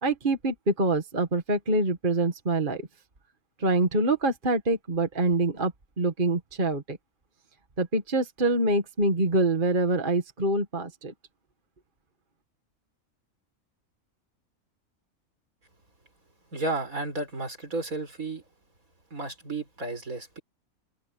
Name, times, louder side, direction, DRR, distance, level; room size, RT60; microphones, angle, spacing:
voice 1, 0.0-2.9 3.6-7.0 7.8-11.1, right 2 dB, 35° right, 2.1 m, -25 dB
voice 2, 16.5-18.4 19.1-20.4, right 2 dB, 75° right, 5.8 m, -32 dB
open air
omnidirectional pair, 1.5 m